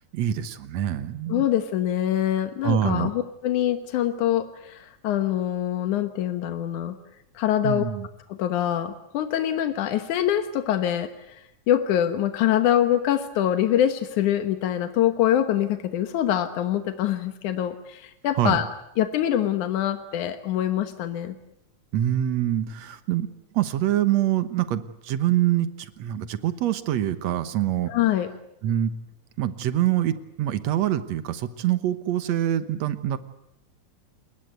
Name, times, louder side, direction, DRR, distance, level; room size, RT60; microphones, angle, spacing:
voice 1, 0.0-1.5 2.6-3.1 7.6-8.1 18.4-18.6 21.9-23.3 23.5-27.9 28.6-28.9 29.4-33.2, right 11 dB, 70° right, 12 dB, 2.3 m, -25 dB
voice 2, 1.3-7.0 7.4-7.8 8.3-11.1 11.7-18.7 19.0-21.3 27.9-28.3, left 11 dB, 85° left, 9 dB, 2.7 m, -24 dB
28.0 x 21.5 x 8.1 m, 0.82 s
omnidirectional pair, 3.4 m